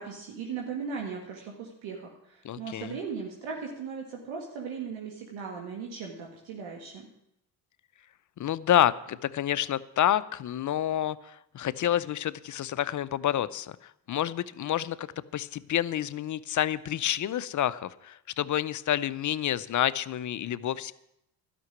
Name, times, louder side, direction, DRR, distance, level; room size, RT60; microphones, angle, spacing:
voice 1, 0.0-7.1, right 5 dB, 70° right, 0 dB, 1.8 m, -38 dB
voice 2, 2.4-2.9 8.4-15.1 15.3-20.9, left 11 dB, 40° left, 17 dB, 0.6 m, -28 dB
12.5 x 6.0 x 9.3 m, 0.81 s
hypercardioid pair, 60°, 48 cm